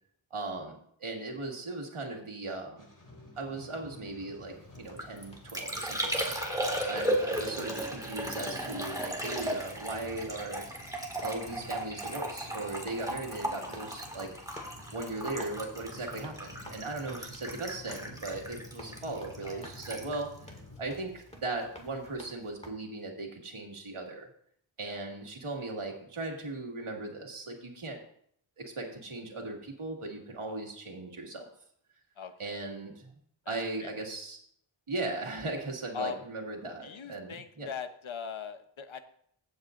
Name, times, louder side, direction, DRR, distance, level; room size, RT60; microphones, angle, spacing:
voice 1, 0.3-2.9 3.4-6.3 6.9-10.7 11.2-14.3 14.9-24.3 24.8-28.0 28.6-31.5 32.4-33.1 33.5-34.4 34.9-37.7, right 2 dB, 85° right, 0 dB, 2.1 m, -38 dB
sound 1, 2.8-20.8, left 2 dB, 40° left, 2.0 m, -52 dB
sound 2, 4.5-22.7, equal, 15° left, 2.1 m, -53 dB
Liquid, 4.8-21.4 21.6-22.2, right 1 dB, 5° right, 2.0 m, -36 dB
voice 2, 32.2-32.6 33.4-33.5 33.8-33.9 35.9-36.2 36.8-39.0, left 6 dB, 70° left, 9 dB, 0.9 m, -40 dB
15.5 x 8.1 x 2.6 m, 0.67 s
wide cardioid pair, 55°, 49 cm